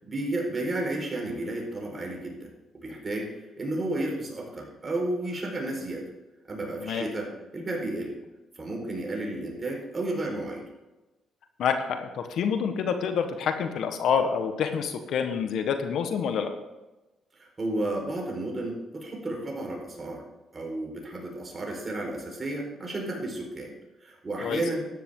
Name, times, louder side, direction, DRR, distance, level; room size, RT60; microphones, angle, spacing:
voice 1, 0.0-2.5 2.7-6.1 6.5-8.1 8.6-10.6 17.4-20.2 20.5-23.7 24.0-24.8, right 1 dB, 30° right, 0 dB, 4.7 m, -32 dB
voice 2, 11.6-16.5 24.4-24.6, left 7 dB, 75° left, 7 dB, 1.3 m, -27 dB
14.0 x 10.5 x 3.8 m, 1.1 s
cardioid pair, 90°, 0 cm